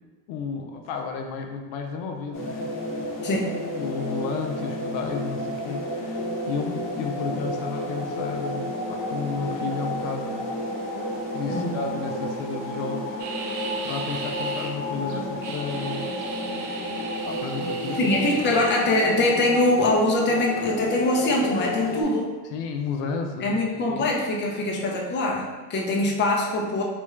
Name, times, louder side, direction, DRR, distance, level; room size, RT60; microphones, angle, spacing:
voice 1, 0.3-2.7 3.0-3.4 3.8-10.4 11.3-16.1 17.2-18.1 18.5-18.6 22.5-23.6 23.9-24.1, left 5 dB, 80° left, 4 dB, 0.6 m, -33 dB
sound 1, 2.3-22.0, left 1 dB, 45° left, 0.9 m, -31 dB
voice 2, 3.2-3.5 11.5-11.8 18.0-22.3 23.4-26.8, left 2 dB, 25° left, -1 dB, 0.5 m, -23 dB
sound 2, 13.2-14.7 15.1-18.8, right 4 dB, 45° right, 0.5 m, -37 dB
3.4 x 2.3 x 3.1 m, 1.3 s
cardioid pair, 110°, 45 cm